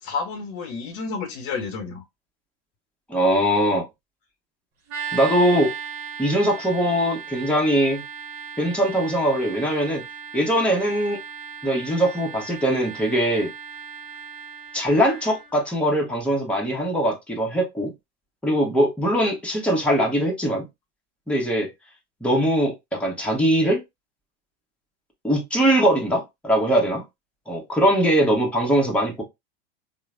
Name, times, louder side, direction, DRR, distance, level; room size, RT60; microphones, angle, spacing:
voice 1, 0.0-2.0, left 4 dB, 55° left, 0.8 m, -30 dB
voice 2, 3.1-3.9 5.1-5.7 6.2-8.0 8.6-10.0 10.3-11.2 11.6-13.5 14.7-17.9 18.4-20.6 21.3-21.7 22.2-23.8 25.2-27.0 27.5-29.2, equal, 5° left, 1.1 m, -21 dB
sound 1, 4.9-15.5, right 6 dB, 45° right, 1.1 m, -37 dB
3.0 x 2.1 x 2.4 m
hypercardioid pair, 90°, 33 cm